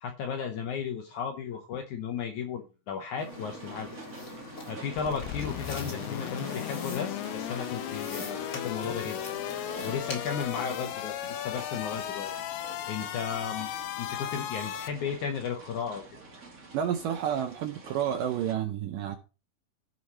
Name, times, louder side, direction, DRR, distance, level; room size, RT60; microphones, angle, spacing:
voice 1, 0.0-4.0 4.7-9.2 9.8-12.3 12.9-13.7 14.0-16.0, left 7 dB, 70° left, 1.9 m, -34 dB
sound 1, 3.2-10.9, left 1 dB, 35° left, 1.6 m, -42 dB
sound 2, 3.3-18.5, right 3 dB, 40° right, 1.1 m, -48 dB
sound 3, 5.0-14.9, left 12 dB, 85° left, 2.8 m, -36 dB
voice 2, 16.7-19.2, right 9 dB, 75° right, 2.1 m, -30 dB
14.5 x 4.8 x 4.2 m
omnidirectional pair, 4.5 m